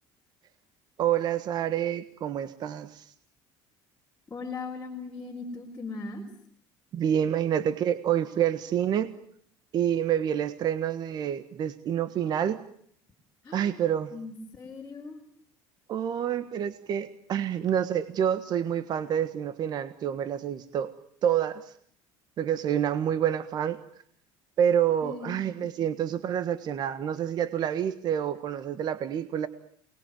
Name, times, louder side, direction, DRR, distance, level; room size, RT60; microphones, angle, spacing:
voice 1, 1.0-3.1 6.9-9.1 9.7-12.6 13.5-14.1 15.9-20.9 21.2-21.7 22.4-23.8 24.6-29.5, right 9 dB, 45° right, 12 dB, 1.5 m, -28 dB
voice 2, 4.3-6.2 13.4-13.8 14.1-15.2 25.0-25.4, left 4 dB, 15° left, -1 dB, 4.5 m, -39 dB
28.5 x 20.5 x 9.3 m, 0.65 s
cardioid pair, 130°, 10 cm